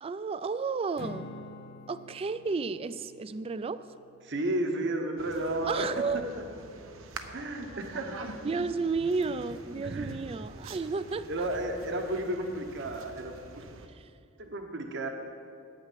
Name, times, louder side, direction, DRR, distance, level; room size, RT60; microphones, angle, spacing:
voice 1, 0.0-1.3 1.9-3.8 5.6-6.2 8.4-11.5 13.9-14.1, right 4 dB, 30° right, 14 dB, 0.3 m, -32 dB
Acoustic guitar / Strum, 1.0-5.4, left 2 dB, 50° left, 0.5 m, -49 dB
voice 2, 4.2-5.9 6.4-6.5 7.3-8.3 9.8-10.1 11.3-13.6 14.4-15.1, right 1 dB, 60° right, 4 dB, 1.1 m, -32 dB
sound 1, 5.2-13.9, right 3 dB, 85° right, 0.8 m, -45 dB
9.1 x 9.0 x 7.5 m, 2.4 s
head